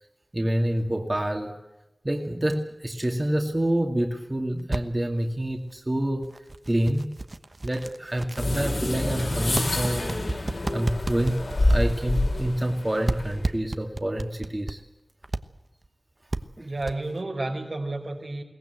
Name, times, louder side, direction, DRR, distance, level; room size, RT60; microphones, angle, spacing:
voice 1, 0.3-1.5 2.0-6.3 6.7-7.1 7.6-10.2 10.7-14.8 16.6-16.7, right 1 dB, 30° right, 2 dB, 2.2 m, -27 dB
sound 1, 4.6-4.8 5.5-5.6 6.2-12.8 13.1-14.8 15.2-15.4 15.8-15.9 16.3-16.4 16.8-17.2, right 2 dB, 50° right, 1.1 m, -32 dB
sound 2, 8.4-13.5, left 1 dB, 85° left, 5.7 m, -27 dB
voice 2, 16.6-18.4, right 2 dB, 75° right, 1 dB, 4.9 m, -31 dB
22.5 x 18.5 x 8.1 m, 1.0 s
wide cardioid pair, 55°, 0 cm